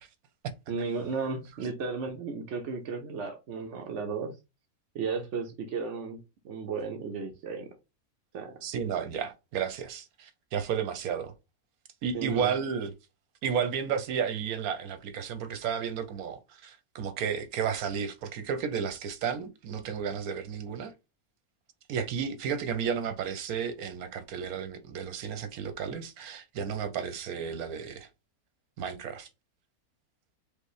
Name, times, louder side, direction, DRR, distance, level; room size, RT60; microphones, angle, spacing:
voice 1, 0.7-4.4 4.9-6.2 6.4-7.7 8.3-8.6 12.1-12.5, right 5 dB, 60° right, 0.9 m, -34 dB
voice 2, 8.6-11.3 12.0-12.9 13.4-20.9 21.9-28.1 28.8-29.3, right 7 dB, 80° right, 1.2 m, -32 dB
5.2 x 2.1 x 4.8 m
omnidirectional pair, 1.5 m